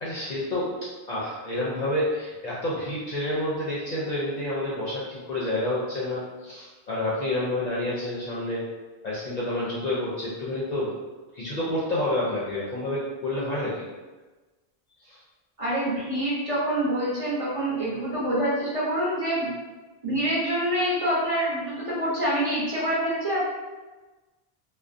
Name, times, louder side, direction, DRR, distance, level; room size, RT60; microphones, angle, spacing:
voice 1, 0.0-8.6 9.0-11.0 11.3-13.9 15.0-15.2, left 1 dB, 55° left, -7 dB, 0.5 m, -29 dB
voice 2, 15.6-19.5 20.0-23.4, right 1 dB, 35° right, -9 dB, 0.7 m, -26 dB
2.4 x 2.1 x 2.5 m, 1.2 s
omnidirectional pair, 1.0 m